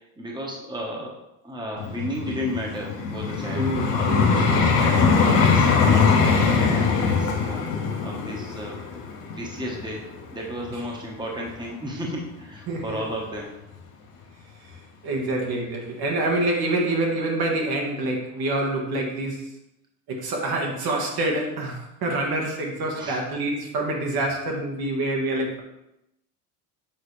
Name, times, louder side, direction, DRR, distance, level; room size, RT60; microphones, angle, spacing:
voice 1, 0.0-7.7 8.0-8.8 9.3-10.0 10.3-13.5 22.9-23.2, equal, 10° right, -1 dB, 1.3 m, -33 dB
Vehicle, 1.8-10.9 11.5-11.7, left 5 dB, 90° left, 1.1 m, -22 dB
voice 2, 3.5-4.4 10.7-10.8 12.7-13.0 15.0-19.5 20.1-25.6, right 2 dB, 50° right, 1 dB, 1.6 m, -26 dB
7.3 x 4.0 x 3.3 m, 0.85 s
supercardioid pair, 85°, 46 cm